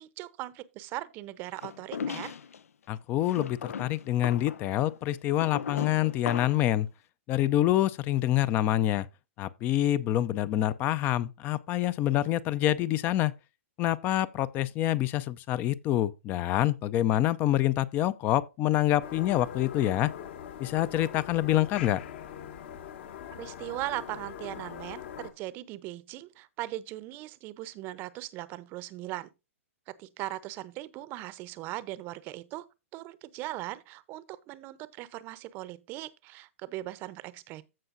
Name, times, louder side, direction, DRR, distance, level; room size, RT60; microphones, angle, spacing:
voice 1, 0.0-2.4 23.4-29.3 29.9-32.7 32.9-37.6, right 16 dB, 30° right, 0.7 m, -39 dB
sound 1, 1.6-2.6 3.3-6.7, left 6 dB, 85° left, 0.6 m, -37 dB
voice 2, 2.9-6.9 7.3-9.1 9.4-13.3 13.8-20.1 20.6-22.0, left 13 dB, 25° left, 0.5 m, -26 dB
sound 2, 19.0-25.3, left 9 dB, 50° left, 1.5 m, -42 dB
15.0 x 5.5 x 2.6 m
hypercardioid pair, 150°, 8 cm